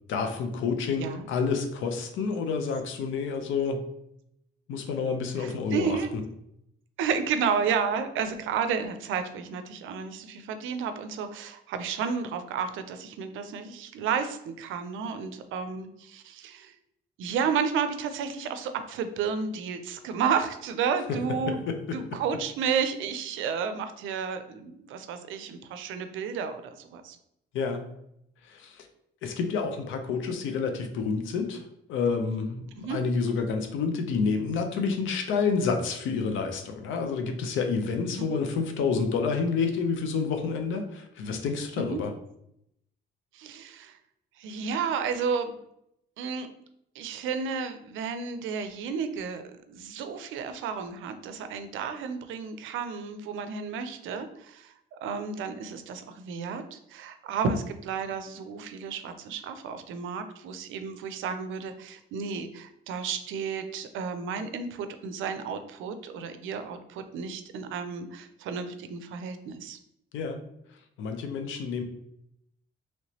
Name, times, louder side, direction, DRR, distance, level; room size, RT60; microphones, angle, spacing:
voice 1, 0.1-3.8 4.7-6.2 21.1-21.2 21.5-22.0 27.5-27.8 28.4-28.9 29.2-31.6 31.9-42.1 70.1-70.4 71.0-71.8, left 5 dB, 80° left, 6 dB, 0.6 m, -29 dB
voice 2, 5.4-6.1 7.0-16.7 17.2-21.6 21.9-27.2 32.8-33.0 38.2-38.4 41.8-42.0 43.3-44.0 44.4-45.6 46.2-46.5 46.9-69.8, right 6 dB, 80° right, 9 dB, 0.5 m, -32 dB
3.1 x 3.0 x 2.8 m, 0.76 s
cardioid pair, 90°, 20 cm